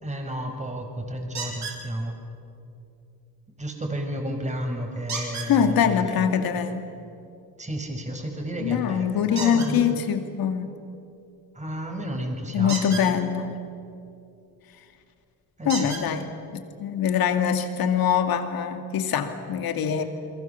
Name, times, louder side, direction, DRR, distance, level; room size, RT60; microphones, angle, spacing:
voice 1, 0.0-2.1 3.6-6.0 7.6-10.0 11.5-13.2 15.6-15.8 20.0-20.1, right 1 dB, 20° right, 4 dB, 5.2 m, -32 dB
sound 1, 1.3-1.8 5.1-5.5 9.3-9.7 12.6-13.1 14.7-14.8 15.7-16.0 17.0-17.1 17.6-17.7, right 4 dB, 50° right, 5.9 m, -32 dB
voice 2, 5.5-6.9 8.6-10.7 12.5-13.5 15.6-20.0, left 8 dB, 70° left, 7 dB, 2.4 m, -24 dB
29.0 x 23.0 x 7.0 m, 2.6 s
cardioid pair, 90°, 37 cm